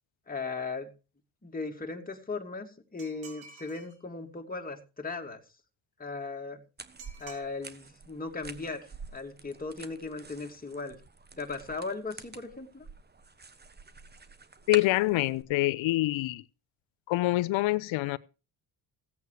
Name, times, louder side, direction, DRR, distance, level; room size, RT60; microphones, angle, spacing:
voice 1, 0.3-0.9 1.4-5.4 6.0-6.6 7.2-11.0 11.4-12.9, left 3 dB, 20° left, 2.7 m, -37 dB
sound 1, 3.0-4.0 7.0-7.4, right 5 dB, 70° right, 3.5 m, -49 dB
sound 2, 6.8-15.4, right 4 dB, 20° right, 1.3 m, -47 dB
voice 2, 14.7-16.4 17.1-18.2, left 18 dB, 75° left, 0.9 m, -26 dB
16.0 x 8.3 x 4.9 m
supercardioid pair, 75°, 48 cm